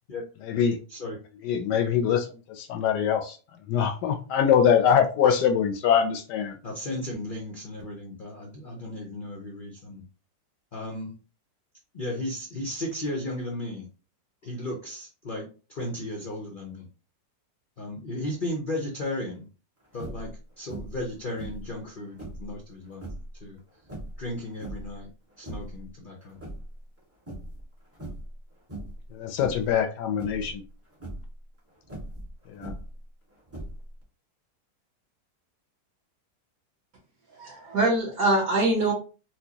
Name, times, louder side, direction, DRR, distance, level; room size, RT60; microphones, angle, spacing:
voice 1, 0.5-0.8 1.4-2.3 2.6-3.4 3.7-6.5 29.1-30.6 32.6-32.7, left 8 dB, 75° left, 1.1 m, -23 dB
voice 2, 6.6-10.0 10.7-11.1 11.9-13.9 14.4-16.9 17.8-19.5 19.9-20.3 20.6-23.1 23.4-23.6 24.2-25.1 25.4-26.4, left 1 dB, 55° left, 0.5 m, -35 dB
sound 1, 19.9-20.3 20.7-21.1 21.3-22.5 22.9-23.3 23.8-25.0 25.3-25.8 26.2-27.0 27.3-27.6 27.9-28.3 28.7-29.0 29.3-29.7 30.2-30.5 30.9-31.3 31.8-33.0 33.5-34.0, right 1 dB, 10° right, 0.7 m, -39 dB
voice 3, 37.4-38.9, right 2 dB, 55° right, 1.8 m, -23 dB
4.4 x 2.2 x 2.8 m
omnidirectional pair, 1.9 m